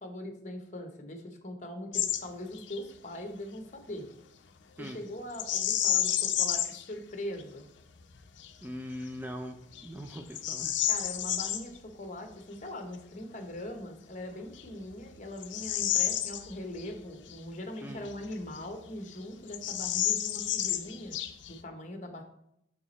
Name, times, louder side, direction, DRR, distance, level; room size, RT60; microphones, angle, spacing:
voice 1, 0.0-4.1 4.8-7.7 10.9-21.2 21.5-22.2, left 1 dB, 40° left, 5 dB, 0.9 m, -41 dB
Bird vocalization bird call bird song, 1.9-2.2 2.5-2.8 5.3-6.8 7.4-7.5 8.1-8.5 9.1-9.2 9.7-11.6 13.7-13.8 14.5-16.9 17.3-17.4 18.1-18.9 19.1-19.2 19.5-21.6, left 11 dB, 80° left, 0.5 m, -30 dB
voice 2, 8.6-9.6 9.8-10.7 17.8-18.0, equal, 10° right, 4 dB, 0.3 m, -40 dB
6.0 x 4.7 x 4.0 m, 0.77 s
head